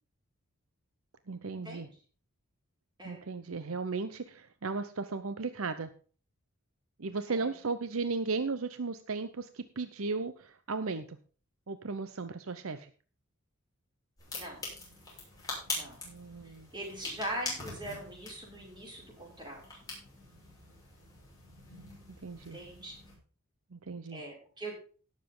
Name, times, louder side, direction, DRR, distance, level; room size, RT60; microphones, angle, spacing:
voice 1, 1.3-1.9 3.0-5.9 7.0-11.2 11.7-12.9 16.0-16.7 22.2-22.6 23.7-24.2, right 4 dB, 70° right, 11 dB, 0.8 m, -36 dB
sound 1, 14.2-23.1, left 3 dB, 15° left, 6.5 m, -43 dB
voice 2, 16.7-19.6 22.5-22.9 24.1-24.7, right 1 dB, 20° right, -2 dB, 5.6 m, -41 dB
17.5 x 7.4 x 3.9 m, 0.39 s
head